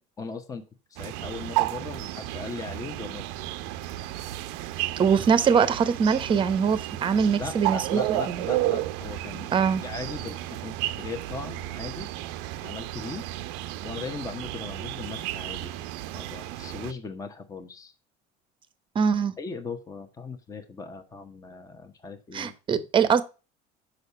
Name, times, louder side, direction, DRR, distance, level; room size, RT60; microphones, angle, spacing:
voice 1, 0.2-0.6 0.9-3.5 7.4-9.5 9.8-12.1 12.6-13.2 13.8-15.7 16.1-17.9 19.4-22.8, left 4 dB, 20° left, 1.1 m, -38 dB
sound 1, 1.0-16.9, right 15 dB, 80° right, 0.7 m, -32 dB
voice 2, 5.0-8.0 8.3-8.4 9.5-9.8 18.9-19.3 22.3-23.2, right 6 dB, 25° right, 0.9 m, -22 dB
6.6 x 5.6 x 6.9 m
cardioid pair, 145°, 19 cm